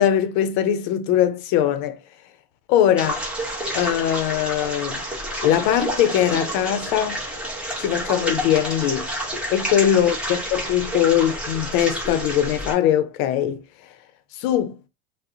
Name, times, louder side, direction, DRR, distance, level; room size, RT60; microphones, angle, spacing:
voice 1, 0.0-2.0 2.7-3.2 3.7-5.0 5.4-7.2 7.8-9.1 9.5-13.6 14.3-14.8, left 10 dB, 45° left, 0.5 m, -21 dB
sound 1, 3.0-12.7, right 1 dB, 5° right, 0.7 m, -29 dB
2.3 x 2.0 x 2.6 m
hypercardioid pair, 90°, 43 cm